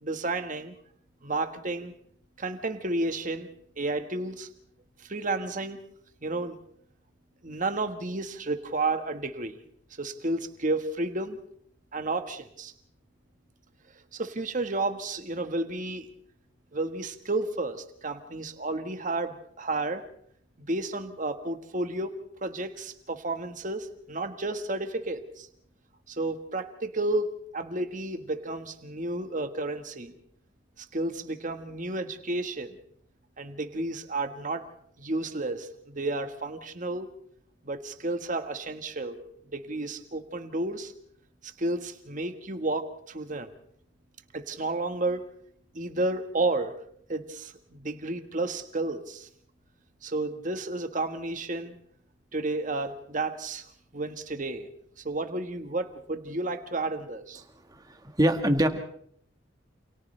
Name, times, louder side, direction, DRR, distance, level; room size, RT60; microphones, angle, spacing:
voice 1, 0.0-0.7 1.2-1.9 2.4-3.5 3.8-4.5 5.1-5.8 6.2-6.6 7.4-9.6 10.0-11.4 11.9-12.7 14.1-16.1 16.7-20.0 20.6-25.5 26.1-30.1 30.8-32.8 33.4-34.7 35.0-37.1 37.6-39.2 39.5-40.9 41.4-43.5 44.3-45.2 45.7-46.7 47.1-49.3 50.0-51.7 52.3-53.7 53.9-54.7 55.0-57.4, right 2 dB, 40° right, 7 dB, 1.5 m, -31 dB
voice 2, 57.7-58.7, right 1 dB, 20° right, 6 dB, 1.7 m, -24 dB
28.5 x 28.0 x 3.4 m, 0.66 s
head